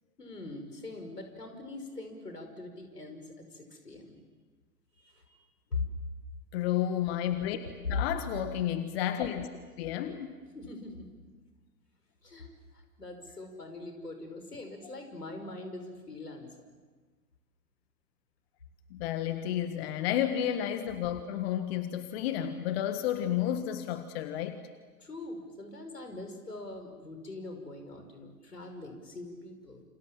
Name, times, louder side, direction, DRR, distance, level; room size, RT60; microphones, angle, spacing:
voice 1, 0.2-4.2 5.0-5.4 5.7-5.8 7.6-8.0 10.5-11.1 12.2-16.5 25.0-29.8, left 3 dB, 85° left, 5 dB, 5.7 m, -41 dB
voice 2, 6.5-7.6 7.9-9.5 9.8-10.3 18.9-24.6, left 11 dB, 40° left, 9 dB, 1.8 m, -31 dB
28.5 x 27.5 x 7.5 m, 1.4 s
figure-of-eight pair, 110°, 46 cm